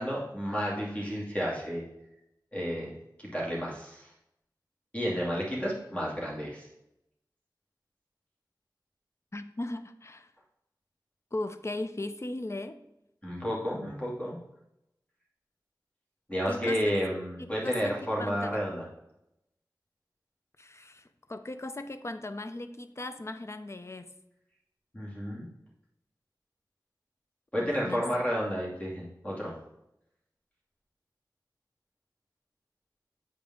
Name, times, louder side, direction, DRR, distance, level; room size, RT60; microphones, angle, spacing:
voice 1, 0.0-1.8 2.5-2.9 3.2-4.1 4.9-6.7 13.2-14.4 16.3-18.8 24.9-25.5 27.5-29.5, equal, 15° left, -5 dB, 2.7 m, -31 dB
voice 2, 9.3-10.3 11.3-12.8 16.5-17.0 17.4-18.6 20.6-24.1 27.6-28.0, left 2 dB, 40° left, 10 dB, 0.5 m, -38 dB
8.0 x 5.2 x 3.8 m, 0.85 s
wide cardioid pair, 50°, 8 cm